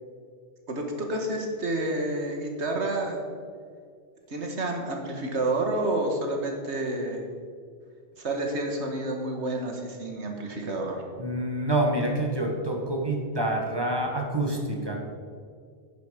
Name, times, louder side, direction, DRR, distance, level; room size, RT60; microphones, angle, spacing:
voice 1, 0.7-3.3 4.3-7.2 8.2-11.0, right 2 dB, 85° right, 2 dB, 2.0 m, -29 dB
voice 2, 11.2-15.0, right 1 dB, 20° right, 1 dB, 1.7 m, -27 dB
11.0 x 9.2 x 5.2 m, 2.1 s
omnidirectional pair, 1.1 m